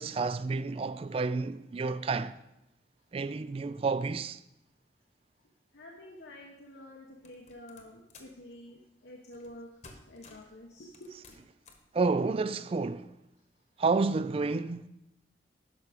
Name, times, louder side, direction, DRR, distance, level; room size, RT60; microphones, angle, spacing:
voice 1, 0.0-2.4 3.1-4.4 11.9-13.1 13.8-14.9, right 4 dB, 35° right, 0.3 m, -30 dB
voice 2, 5.7-9.7 10.1-11.1, left 1 dB, 80° left, 1.1 m, -49 dB
sound 1, 7.2-8.4 9.3-9.6 9.8-10.6 10.9-11.9, left 3 dB, 40° left, 1.2 m, -54 dB
11.0 x 5.9 x 5.1 m
head